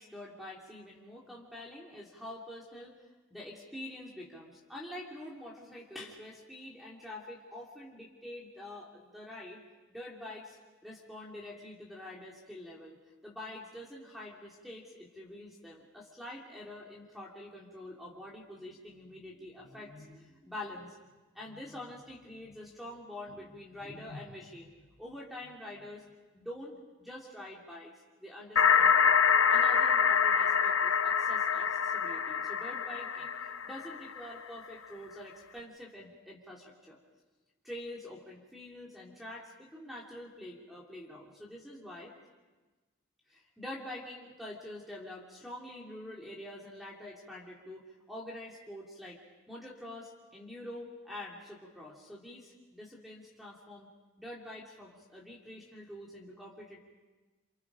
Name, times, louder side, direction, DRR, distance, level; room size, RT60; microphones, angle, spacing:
voice 1, 0.0-3.0 3.3-9.6 9.9-21.0 21.3-24.7 25.0-26.7 27.0-29.1 29.5-37.0 37.6-42.1 43.3-49.2 49.5-53.9 54.2-56.8, left 1 dB, ahead, -3 dB, 3.1 m, -46 dB
sound 1, 28.6-34.3, left 7 dB, 85° left, 1.0 m, -26 dB
29.5 x 28.0 x 5.1 m, 1.2 s
head